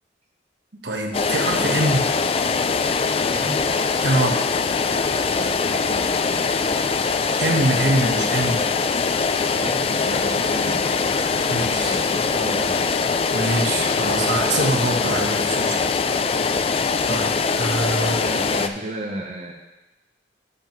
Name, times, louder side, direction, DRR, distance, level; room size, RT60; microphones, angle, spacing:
voice 1, 0.7-2.2 4.0-4.4 7.4-8.6 11.5-12.0 13.3-16.0 17.1-18.2, right 1 dB, 70° right, 1 dB, 1.2 m, -24 dB
sound 1, 1.1-18.7, left 4 dB, 30° left, 0.3 m, -22 dB
voice 2, 3.3-3.8 5.4-6.5 9.6-10.9 11.9-12.8 18.0-19.5, right 1 dB, 35° right, -1 dB, 0.8 m, -34 dB
11.5 x 7.0 x 3.1 m, 1.0 s
head